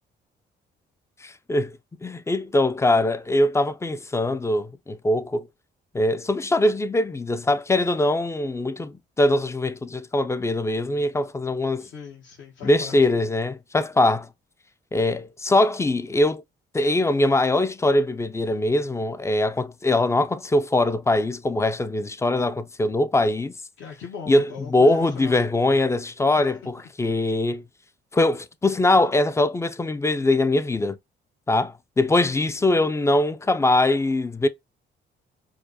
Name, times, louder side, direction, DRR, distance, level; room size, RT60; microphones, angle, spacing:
voice 1, 1.2-1.7 2.0-5.5 5.9-11.9 12.6-14.3 14.9-16.4 16.7-23.5 24.3-27.6 28.1-31.0 31.5-34.5, left 2 dB, 15° left, 0.3 m, -22 dB
voice 2, 11.8-13.2 23.8-25.4 26.4-26.7, left 6 dB, 70° left, 1.0 m, -39 dB
4.7 x 2.1 x 2.6 m
cardioid pair, 90°, 20 cm